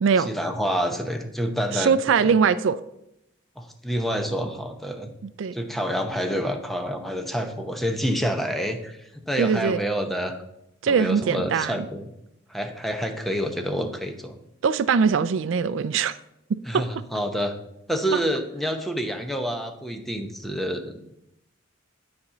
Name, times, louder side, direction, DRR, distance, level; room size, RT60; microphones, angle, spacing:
voice 1, 0.2-2.3 3.6-5.1 5.5-10.4 10.9-12.1 12.5-14.4 16.7-17.5 17.9-21.1, equal, ahead, 5 dB, 0.8 m, -28 dB
voice 2, 1.7-2.8 5.4-5.5 9.4-9.8 10.8-11.9 14.6-16.1 18.1-18.2, right 6 dB, 65° right, 16 dB, 0.3 m, -21 dB
9.6 x 4.3 x 6.7 m, 0.82 s
head